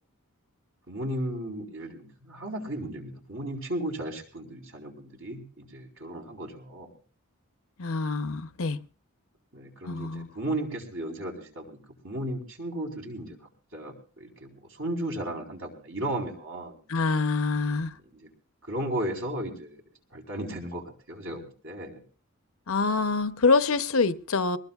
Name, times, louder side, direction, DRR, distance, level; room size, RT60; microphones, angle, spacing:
voice 1, 0.9-6.9 9.5-11.8 12.0-13.4 13.7-16.8 18.1-18.3 18.6-19.8 20.1-22.0, right 1 dB, 70° right, 4.3 m, -35 dB
voice 2, 7.8-8.8 9.9-10.3 16.9-17.9 22.7-24.6, left 4 dB, 70° left, 0.8 m, -25 dB
22.5 x 20.0 x 2.4 m
head